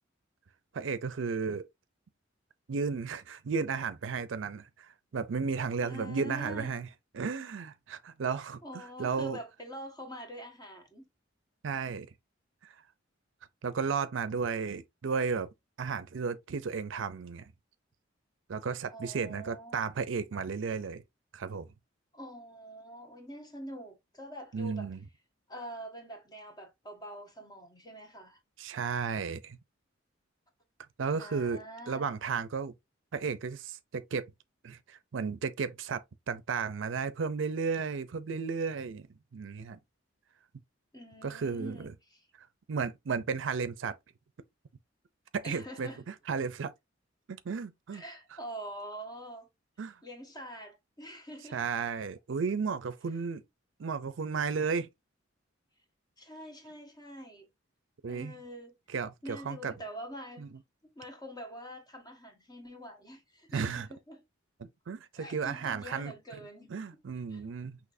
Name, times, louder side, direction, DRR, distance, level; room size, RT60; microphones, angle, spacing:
voice 1, 0.7-1.7 2.7-6.9 7.1-9.4 11.6-12.1 12.6-12.7 13.6-15.5 15.8-17.5 18.5-21.0 21.3-21.7 24.5-25.0 28.6-29.6 31.0-31.6 31.9-32.7 33.1-34.3 34.6-39.1 39.3-39.8 41.2-41.9 42.4-44.0 45.3-46.7 47.3-48.0 49.8-50.0 51.5-53.4 53.8-54.9 58.0-58.3 58.9-59.7 60.4-60.5 63.5-63.9 64.6-66.1 66.7-67.8, right 5 dB, 70° right, 0.5 m, -34 dB
voice 2, 5.8-6.7 8.6-11.0 18.9-19.8 22.1-24.9 25.5-28.4 31.2-32.1 40.9-42.3 45.4-46.0 47.9-49.5 50.0-51.6 56.2-57.5 58.1-58.7 59.2-60.4 60.9-64.2 65.1-66.9 67.3-67.4, equal, 20° left, 1.4 m, -45 dB
6.0 x 3.0 x 2.6 m
head